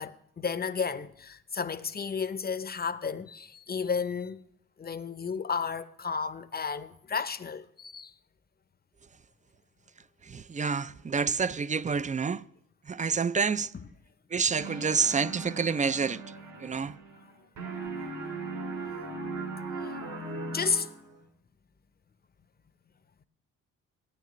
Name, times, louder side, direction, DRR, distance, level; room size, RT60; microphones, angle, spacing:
voice 1, 0.0-4.4 4.8-8.1 13.7-13.9 19.8-20.9, left 6 dB, 30° left, 0.7 m, -33 dB
voice 2, 10.3-12.4 12.9-13.7 14.3-16.2 16.6-16.9, right 5 dB, 25° right, 0.4 m, -28 dB
sound 1, 14.6-17.3 17.6-21.2, right 3 dB, 75° right, 3.7 m, -38 dB
16.5 x 9.1 x 3.1 m
cardioid pair, 65°, 33 cm